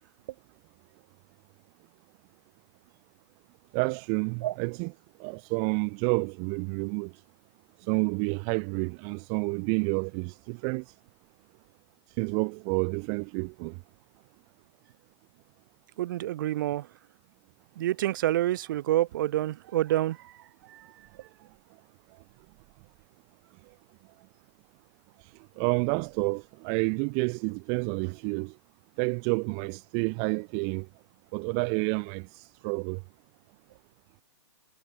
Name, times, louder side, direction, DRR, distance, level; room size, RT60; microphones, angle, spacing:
voice 1, 3.7-4.9 5.2-7.1 7.8-10.9 12.2-13.8 25.2-25.3 25.6-28.5 29.0-30.9 31.3-33.0, right 40 dB or more, 25° right, 0.6 m, -29 dB
voice 2, 16.0-16.9 17.8-20.3 20.7-20.9, right 14 dB, 45° right, 1.6 m, -28 dB
hypercardioid pair, 155°, 16 cm